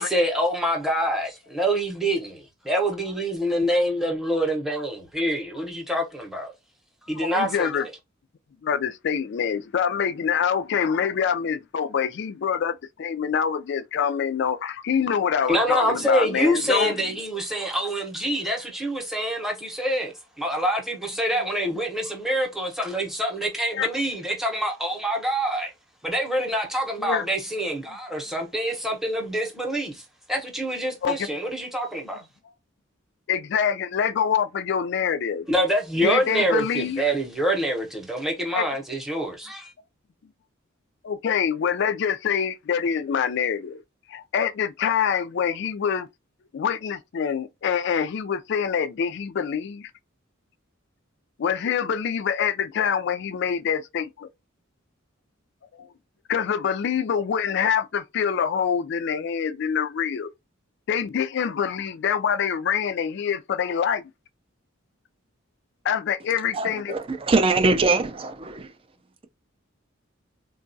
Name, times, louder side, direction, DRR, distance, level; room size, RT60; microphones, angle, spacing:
voice 1, 0.0-6.5 7.1-7.9 15.5-25.7 26.0-30.0 30.3-32.2 35.5-39.7, right 1 dB, ahead, 0.8 m, -26 dB
voice 2, 7.2-7.9 8.6-17.1 23.7-23.9 27.0-27.3 31.0-31.2 33.3-35.5 36.0-37.2 38.5-38.6 41.0-43.8 44.1-46.1 46.5-49.9 51.4-54.3 55.7-55.9 56.3-60.3 60.9-64.0 65.8-66.9, left 7 dB, 55° left, 0.3 m, -25 dB
voice 3, 66.5-68.7, right 3 dB, 25° right, 0.4 m, -22 dB
3.7 x 2.3 x 2.6 m
head